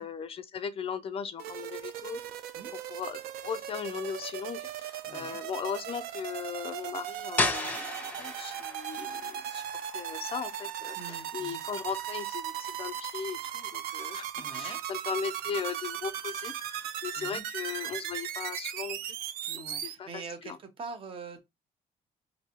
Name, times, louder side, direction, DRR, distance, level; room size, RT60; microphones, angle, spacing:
voice 1, 0.0-2.2 2.7-9.6 9.9-19.2 19.5-20.6, left 7 dB, 35° left, 0.4 m, -38 dB
sound 1, 1.4-19.9, right 11 dB, 75° right, 0.5 m, -38 dB
voice 2, 5.1-5.4 11.0-11.6 14.3-14.8 17.2-17.4 19.5-21.4, right 4 dB, 35° right, 0.8 m, -44 dB
sound 2, 7.4-13.0, left 2 dB, 10° left, 0.7 m, -36 dB
4.6 x 2.6 x 2.8 m
cardioid pair, 120°, 16 cm